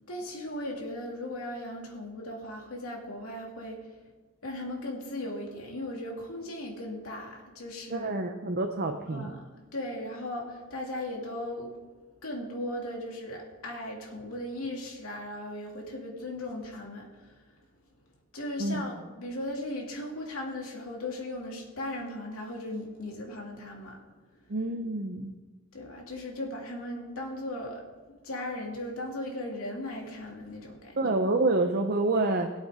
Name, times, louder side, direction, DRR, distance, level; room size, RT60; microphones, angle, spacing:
voice 1, 0.1-4.0 4.4-8.2 9.1-11.7 12.2-17.5 18.3-24.0 25.7-31.0, left 1 dB, 70° left, -1 dB, 2.7 m, -37 dB
voice 2, 7.9-9.3 18.6-18.8 24.5-25.3 31.0-32.5, right 2 dB, 45° right, 4 dB, 0.8 m, -27 dB
21.0 x 8.2 x 3.8 m, 1.2 s
head